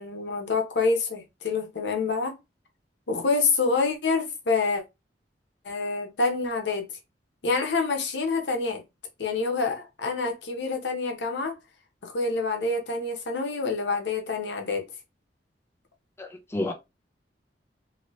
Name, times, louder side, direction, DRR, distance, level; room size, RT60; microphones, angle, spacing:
voice 1, 0.0-2.4 3.1-4.8 5.6-6.9 7.4-8.8 9.2-11.6 12.0-14.9, left 4 dB, 80° left, 0.9 m, -27 dB
voice 2, 16.2-16.7, left 2 dB, 15° left, 0.5 m, -30 dB
2.8 x 2.8 x 3.0 m
head